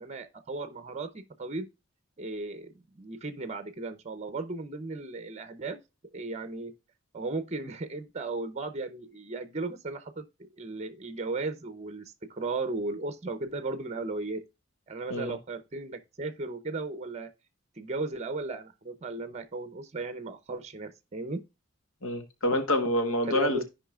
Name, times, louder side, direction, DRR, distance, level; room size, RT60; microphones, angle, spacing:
voice 1, 0.0-1.7 2.2-5.8 6.1-6.7 7.1-14.4 14.9-17.3 17.8-21.4 23.3-23.6, right 3 dB, 35° right, 0.7 m, -36 dB
voice 2, 22.0-23.6, left 1 dB, 80° left, 1.3 m, -27 dB
13.5 x 5.0 x 2.4 m
head